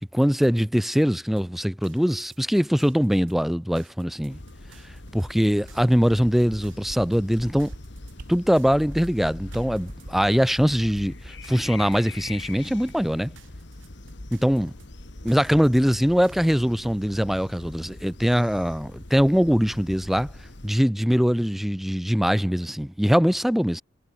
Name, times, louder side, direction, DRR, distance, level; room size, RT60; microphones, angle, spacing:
voice 1, 0.1-4.4 5.1-7.7 8.3-13.3 14.3-14.7 15.2-20.3 20.6-23.8, equal, ahead, 0.3 m, -22 dB
sound 1, 1.4-16.7, right 6 dB, 75° right, 3.8 m, -56 dB
sound 2, 4.3-20.7, left 2 dB, 60° left, 1.8 m, -42 dB
sound 3, 5.5-6.6 6.9-7.0 7.3-7.8 8.1-8.3 8.7-8.9 9.2-10.3 10.7-12.3 12.6-12.7, right 2 dB, 45° right, 0.7 m, -44 dB
head